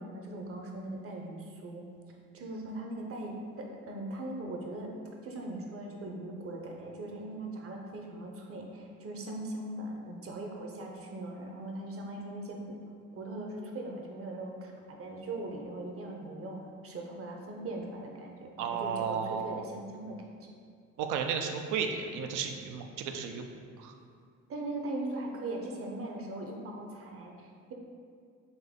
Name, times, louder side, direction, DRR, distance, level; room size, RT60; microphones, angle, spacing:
voice 1, 0.0-1.8 2.3-4.9 5.2-12.7 13.1-20.5 24.5-27.7, right 2 dB, 50° right, 1 dB, 0.7 m, -40 dB
voice 2, 18.6-19.6 21.0-23.5 23.8-23.9, right 6 dB, 90° right, 5 dB, 0.5 m, -33 dB
4.0 x 2.6 x 3.5 m, 2.2 s
cardioid pair, 90°, 30 cm